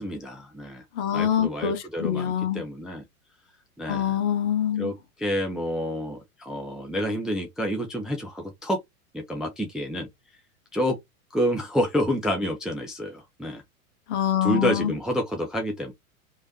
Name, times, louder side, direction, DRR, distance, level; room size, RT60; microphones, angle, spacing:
voice 1, 0.0-0.8 1.1-3.0 3.8-4.2 4.8-8.8 9.1-10.1 10.7-11.0 11.3-13.6 14.4-15.9, equal, ahead, 0.4 m, -28 dB
voice 2, 1.0-2.6 3.9-4.9 14.1-14.9, left 10 dB, 50° left, 1.1 m, -25 dB
3.0 x 2.8 x 2.8 m
figure-of-eight pair, 95°, 44 cm